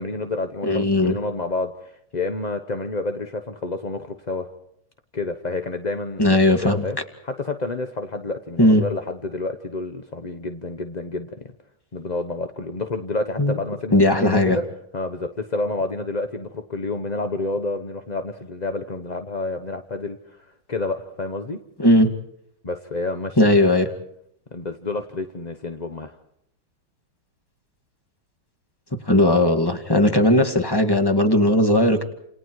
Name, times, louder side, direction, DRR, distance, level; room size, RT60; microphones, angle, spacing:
voice 1, 0.0-4.5 5.1-6.4 6.8-7.0 7.2-11.4 11.9-14.6 14.9-21.6 22.6-23.6 24.5-26.2 30.1-30.2, left 2 dB, 30° left, 7 dB, 0.7 m, -29 dB
voice 2, 0.6-1.1 6.2-6.9 8.6-8.8 13.4-13.6 13.9-14.6 21.8-22.1 23.4-23.9 29.1-32.0, left 1 dB, 10° left, 6 dB, 1.9 m, -17 dB
29.5 x 28.0 x 4.7 m, 0.76 s
omnidirectional pair, 2.3 m